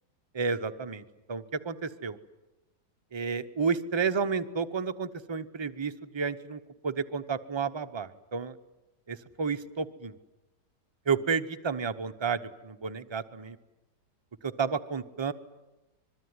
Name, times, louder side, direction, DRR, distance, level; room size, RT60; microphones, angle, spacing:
voice 1, 0.3-2.2 3.1-8.6 9.1-10.1 11.1-13.6 14.4-15.3, right 5 dB, 25° right, 9 dB, 0.5 m, -31 dB
25.0 x 22.5 x 9.6 m, 1.0 s
omnidirectional pair, 1.9 m